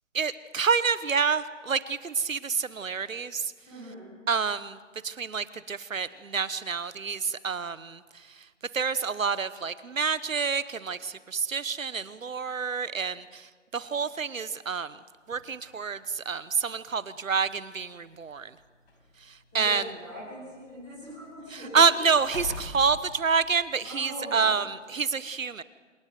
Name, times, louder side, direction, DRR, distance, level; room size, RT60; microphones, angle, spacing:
voice 1, 0.1-3.5 4.3-4.8 5.0-8.4 8.7-15.0 15.3-18.5 19.3-19.8 21.7-25.6, right 5 dB, 85° right, 16 dB, 1.2 m, -28 dB
voice 2, 3.7-4.2 19.5-21.9 23.8-24.5, equal, ahead, -12 dB, 1.1 m, -41 dB
sound 1, 15.3-15.5 16.5-16.6 17.1-17.2 18.2-20.1 20.5-23.9 24.3-24.5, left 3 dB, 50° left, 5.5 m, -43 dB
26.5 x 20.0 x 6.8 m, 1.5 s
hypercardioid pair, 175°, 39 cm